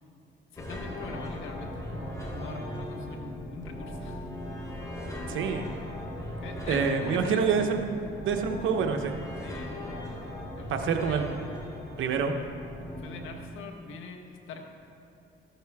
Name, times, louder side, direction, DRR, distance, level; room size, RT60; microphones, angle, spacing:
voice 1, 0.5-4.3 6.1-7.7 9.4-9.7 10.5-11.2 12.3-12.6 13.0-14.7, left 4 dB, 85° left, 3 dB, 1.3 m, -43 dB
sound 1, 0.6-13.3, left 1 dB, 15° left, 3.1 m, -38 dB
voice 2, 5.3-5.7 6.7-8.0 8.2-9.2 10.7-11.3 12.0-12.4, right 6 dB, 80° right, 5 dB, 1.0 m, -27 dB
14.0 x 11.5 x 3.5 m, 2.8 s
cardioid pair, 90°, 20 cm